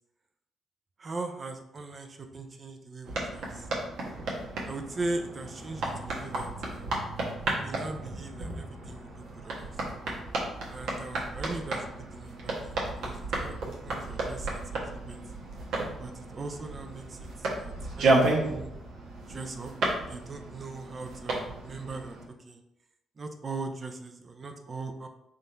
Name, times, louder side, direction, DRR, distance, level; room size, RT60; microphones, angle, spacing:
voice 1, 1.0-3.7 4.6-7.0 7.6-9.7 10.7-15.2 16.0-18.7 19.3-19.7 20.1-22.6 23.2-25.1, right 3 dB, 35° right, 6 dB, 0.6 m, -40 dB
sound 1, 3.0-22.2, right 2 dB, 75° right, 1.2 m, -33 dB
3.8 x 2.6 x 4.4 m, 0.84 s
cardioid pair, 90°, 0 cm